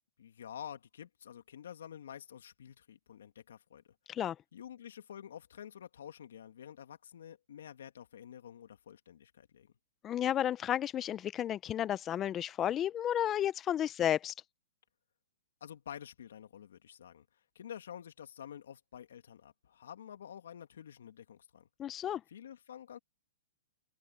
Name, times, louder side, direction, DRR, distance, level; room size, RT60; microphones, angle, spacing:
voice 1, 0.2-3.9 4.5-9.7 15.6-21.7 22.3-23.0, left 9 dB, 75° left, 2.6 m, -49 dB
voice 2, 10.0-14.3 21.8-22.2, left 11 dB, 25° left, 0.6 m, -32 dB
hypercardioid pair, 130°, 0 cm